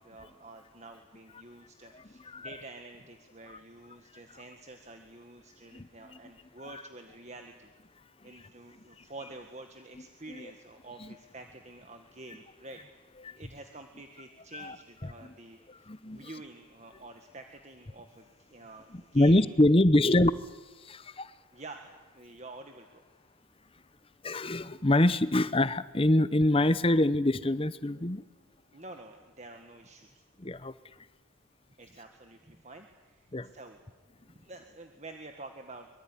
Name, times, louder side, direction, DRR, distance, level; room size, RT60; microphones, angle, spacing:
voice 1, 0.0-7.7 8.2-12.8 13.4-19.4 21.5-23.0 28.7-30.2 31.8-33.8 34.3-36.0, right 2 dB, 35° right, 5 dB, 1.7 m, -48 dB
voice 2, 1.9-2.5 5.7-6.2 10.3-10.5 11.0-11.1 13.2-13.4 14.5-14.8 15.0-15.3 15.7-16.3 18.9-20.3 20.8-21.3 24.2-28.2 30.4-30.7 33.3-33.5, left 1 dB, 25° left, 15 dB, 0.8 m, -25 dB
24.5 x 22.5 x 9.9 m, 1.2 s
head